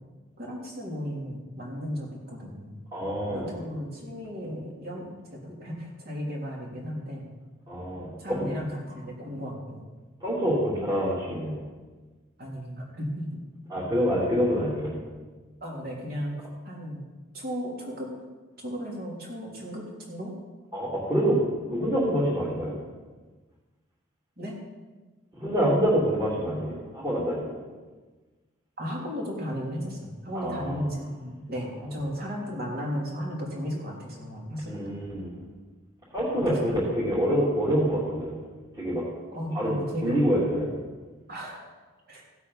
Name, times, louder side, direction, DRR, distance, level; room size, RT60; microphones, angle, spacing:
voice 1, 0.4-2.8 3.3-7.3 8.2-9.8 12.4-13.3 13.6-13.7 15.6-16.3 16.6-17.0 17.3-18.1 18.6-20.3 24.4-24.6 28.8-34.8 36.3-36.9 39.3-40.5 41.3-41.6 42.1-42.2, equal, 50° right, -2 dB, 3.2 m, -35 dB
voice 2, 2.9-3.5 7.7-8.5 10.2-11.6 13.7-15.0 20.7-22.8 25.4-27.6 30.3-30.8 34.7-35.3 36.1-38.4 38.8-39.1 39.5-40.7, equal, 20° right, -9 dB, 2.9 m, -26 dB
16.0 x 8.2 x 5.6 m, 1.3 s
head